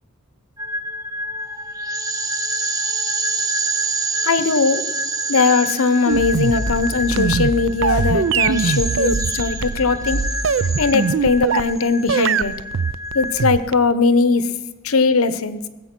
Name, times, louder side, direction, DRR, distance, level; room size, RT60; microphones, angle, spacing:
sound 1, 0.6-13.5, right 2 dB, 15° right, 0.7 m, -27 dB
voice 1, 4.2-4.9 5.3-10.2 10.8-12.5 13.1-15.7, left 4 dB, 80° left, 13 dB, 0.8 m, -19 dB
sound 2, 6.1-11.8, left 1 dB, 20° left, 0.6 m, -30 dB
sound 3, 6.1-11.8 12.1-13.9, right 6 dB, 60° right, 0.4 m, -21 dB
19.5 x 8.1 x 6.0 m, 1.2 s
head